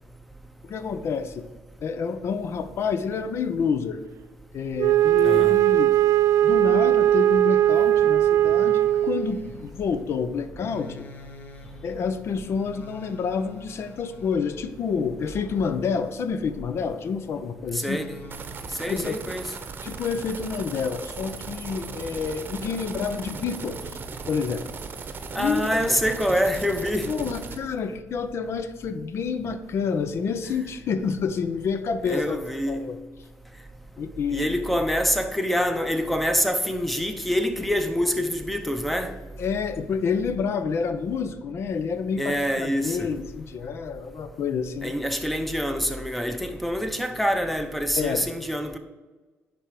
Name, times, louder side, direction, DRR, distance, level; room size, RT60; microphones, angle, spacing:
voice 1, 0.6-1.4 1.8-4.0 4.5-5.9 6.4-11.0 11.8-18.0 18.9-19.2 19.8-24.0 24.3-24.6 25.4-25.7 27.1-32.4 32.7-33.0 34.0-34.6 39.4-44.9 48.0-48.3, left 5 dB, 55° left, 0.7 m, -28 dB
Wind instrument woodwind instrument, 4.8-9.4, right 13 dB, 65° right, 0.3 m, -19 dB
voice 2, 5.2-5.6 17.7-18.2 18.8-19.5 25.3-27.1 32.1-32.9 34.3-39.1 42.2-43.1 44.8-48.8, equal, ahead, 0.8 m, -26 dB
sound 1, 7.6-17.1 17.8-18.9, left 2 dB, 35° left, 1.2 m, -46 dB
sound 2, 18.3-27.6, right 5 dB, 40° right, 0.9 m, -37 dB
9.7 x 3.5 x 5.8 m
cardioid pair, 100°, 5 cm